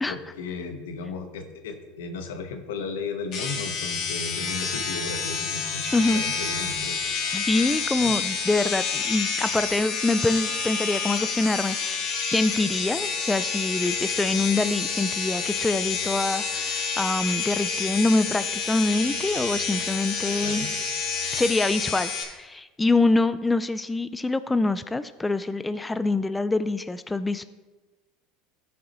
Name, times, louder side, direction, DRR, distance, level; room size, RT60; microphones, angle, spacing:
voice 1, 0.1-7.0 8.0-8.1 20.4-20.7, left 4 dB, 90° left, 6 dB, 1.2 m, -35 dB
sound 1, 3.3-22.2, left 5 dB, 50° left, 2.0 m, -29 dB
voice 2, 5.9-6.2 7.3-20.7 21.3-27.4, left 2 dB, 10° left, 12 dB, 0.4 m, -25 dB
14.0 x 6.1 x 3.1 m, 1.2 s
supercardioid pair, 110°, 0 cm